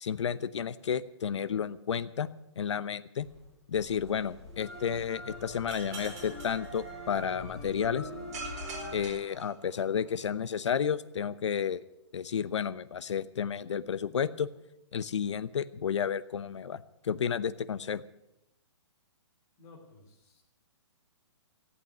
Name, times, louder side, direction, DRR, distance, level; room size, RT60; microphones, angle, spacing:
voice 1, 0.0-2.3 2.6-3.3 3.7-8.1 8.9-11.8 12.1-14.5 14.9-18.0, left 7 dB, 70° left, 15 dB, 0.9 m, -32 dB
sound 1, 3.2-9.1, left 1 dB, ahead, 3.9 m, -43 dB
sound 2, 5.7-7.4 8.3-10.1, right 3 dB, 35° right, 4.6 m, -45 dB
voice 2, 19.6-20.4, left 3 dB, 20° left, 1 dB, 2.9 m, -55 dB
15.0 x 8.4 x 9.2 m, 0.89 s
hypercardioid pair, 165°, 15 cm